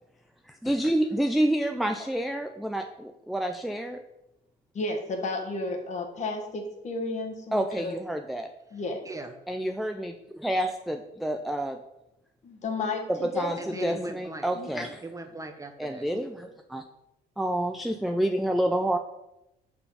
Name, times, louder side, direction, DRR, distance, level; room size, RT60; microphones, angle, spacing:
voice 1, 0.5-4.0 7.5-8.5 9.5-11.8 13.1-15.0 15.8-16.8 17.4-19.0, right 1 dB, ahead, 5 dB, 0.4 m, -28 dB
voice 2, 4.7-7.9 8.7-9.0 12.4-14.0 14.5-14.9 16.1-16.2, left 3 dB, 45° left, 3 dB, 1.4 m, -33 dB
voice 3, 13.6-14.5 15.0-16.1, right 2 dB, 20° right, 6 dB, 0.7 m, -39 dB
5.5 x 4.5 x 5.6 m, 0.90 s
cardioid pair, 110°, 17 cm